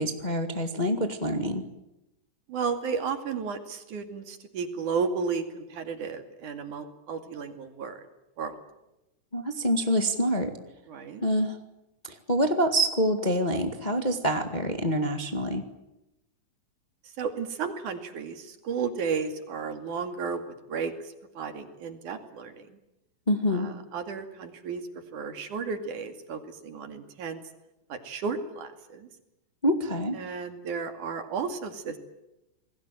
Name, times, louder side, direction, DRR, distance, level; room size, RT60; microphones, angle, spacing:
voice 1, 0.0-1.6 9.3-10.5 11.2-11.6 12.1-15.6 23.3-23.7 29.6-30.2, equal, 20° left, 6 dB, 1.5 m, -26 dB
voice 2, 2.5-8.0 8.4-8.6 10.9-11.2 17.2-22.6 23.5-24.8 25.1-27.4 27.9-29.1 30.2-32.0, right 5 dB, 70° right, 7 dB, 3.8 m, -33 dB
28.5 x 20.5 x 9.3 m, 0.94 s
omnidirectional pair, 3.7 m